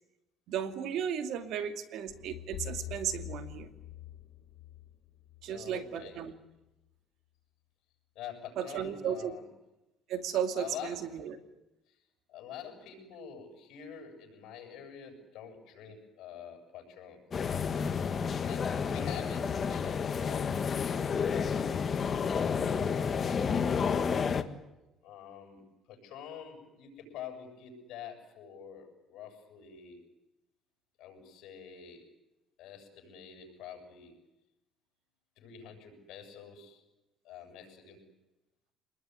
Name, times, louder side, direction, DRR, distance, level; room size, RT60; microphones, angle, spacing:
voice 1, 0.5-3.7 5.4-6.3 8.6-9.3 10.1-11.4, right 9 dB, 70° right, 8 dB, 2.5 m, -35 dB
sound 1, 2.1-6.2, left 13 dB, 90° left, 4.0 m, -45 dB
voice 2, 5.4-6.2 8.1-9.5 10.6-11.3 11.9-12.0 12.3-17.2 18.3-20.5 20.9-22.0 22.4-24.3 25.0-30.0 31.0-32.1 32.6-34.1 35.4-36.8 37.2-38.0, left 8 dB, 75° left, 4 dB, 7.9 m, -47 dB
sound 2, 17.3-24.4, left 6 dB, 35° left, 1.6 m, -30 dB
26.5 x 20.5 x 9.8 m, 0.97 s
cardioid pair, 125°, 0 cm